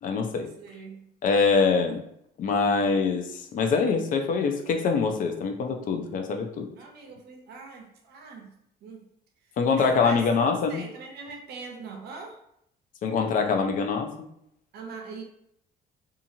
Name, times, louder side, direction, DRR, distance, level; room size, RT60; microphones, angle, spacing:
voice 1, 0.0-0.5 1.2-2.0 2.4-6.7 9.6-10.8 13.0-14.1, left 5 dB, 50° left, 5 dB, 0.5 m, -24 dB
voice 2, 0.6-1.1 6.8-8.5 8.8-9.1 9.8-10.2 10.7-12.4 14.7-15.2, right 4 dB, 70° right, 3 dB, 0.6 m, -42 dB
2.8 x 2.4 x 2.7 m, 0.74 s
cardioid pair, 110°, 17 cm